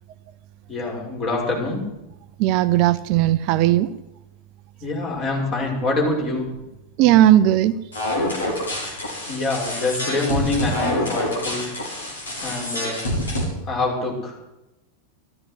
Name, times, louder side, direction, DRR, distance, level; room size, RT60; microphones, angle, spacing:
voice 1, 0.7-1.9 4.8-6.5 9.3-11.7 12.4-13.1 13.6-14.4, left 2 dB, 30° left, 0 dB, 5.9 m, -25 dB
voice 2, 2.4-3.9 7.0-7.7, right 13 dB, 40° right, 13 dB, 0.6 m, -16 dB
sound 1, 7.9-13.4, left 1 dB, 70° left, 4.9 m, -26 dB
13.5 x 13.0 x 8.1 m, 0.93 s
figure-of-eight pair, 90°, 0 cm